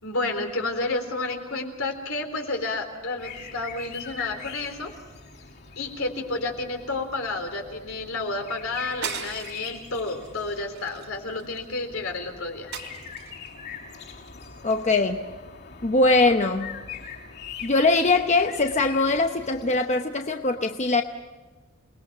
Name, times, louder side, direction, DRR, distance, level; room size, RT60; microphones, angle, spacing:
voice 1, 0.0-4.9 5.8-12.7, left 2 dB, 70° left, 4 dB, 3.7 m, -30 dB
sound 1, 3.2-19.8, left 6 dB, 55° left, 6.3 m, -42 dB
sound 2, 9.0-9.8 10.2-10.4 10.7-11.7 12.7-13.5, right 7 dB, 75° right, 3.1 m, -36 dB
voice 2, 14.6-15.2 15.8-16.8 17.6-21.0, left 3 dB, 35° left, 5 dB, 0.9 m, -22 dB
28.5 x 20.5 x 6.2 m, 1.3 s
head